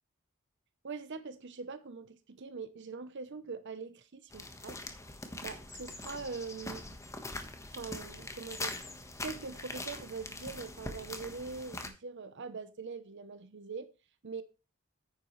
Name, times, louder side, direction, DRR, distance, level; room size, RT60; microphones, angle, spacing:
voice 1, 0.8-4.8 5.4-6.9 7.7-8.8 9.2-13.9 14.2-14.4, right 4 dB, 60° right, 0.8 m, -43 dB
sound 1, 4.3-11.9, left 2 dB, 15° left, 1.3 m, -43 dB
9.5 x 8.4 x 3.2 m
head